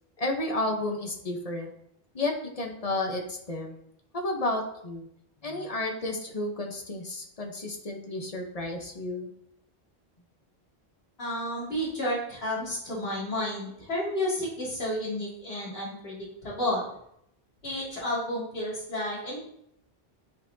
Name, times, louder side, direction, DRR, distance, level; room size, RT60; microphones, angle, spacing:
voice 1, 0.2-1.7 2.1-3.8 4.1-5.1 5.4-9.3, left 2 dB, 35° left, 2 dB, 1.0 m, -32 dB
voice 2, 11.2-16.9 17.6-19.4, left 1 dB, 65° left, -8 dB, 2.7 m, -31 dB
10.5 x 4.1 x 2.7 m, 0.74 s
omnidirectional pair, 1.1 m